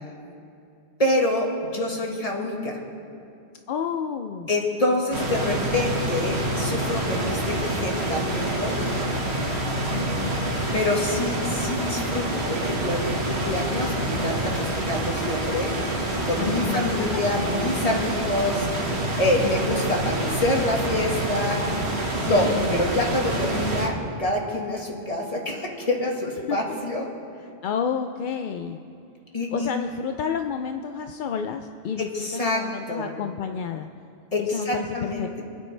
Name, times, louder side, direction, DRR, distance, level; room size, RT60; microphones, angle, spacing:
voice 1, 1.0-2.8 4.5-8.8 10.7-18.7 19.2-21.6 22.3-27.1 29.3-29.7 32.0-33.1 34.3-35.4, left 1 dB, 30° left, 0 dB, 1.7 m, -26 dB
voice 2, 3.7-4.5 5.1-5.2 9.9-10.5 16.4-16.9 22.2-22.8 26.5-26.6 27.4-28.8 29.5-33.9 34.4-35.4, left 7 dB, 60° left, 6 dB, 0.5 m, -30 dB
sound 1, 5.1-23.9, right 1 dB, 65° right, 2.0 m, -27 dB
27.0 x 9.3 x 3.3 m, 2.6 s
omnidirectional pair, 1.2 m